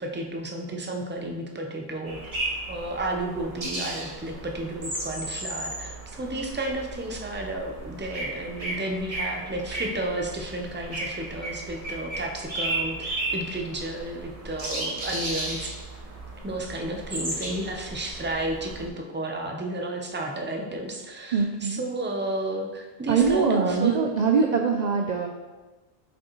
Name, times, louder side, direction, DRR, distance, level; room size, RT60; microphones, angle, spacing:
voice 1, 0.0-2.2 2.7-15.7 16.4-24.0, right 1 dB, 15° right, 1 dB, 0.6 m, -32 dB
sound 1, 2.1-18.9, right 2 dB, 35° right, 1.2 m, -34 dB
voice 2, 21.3-21.8 23.1-25.3, right 5 dB, 55° right, 3 dB, 0.5 m, -23 dB
7.7 x 5.2 x 3.0 m, 1.2 s
omnidirectional pair, 1.0 m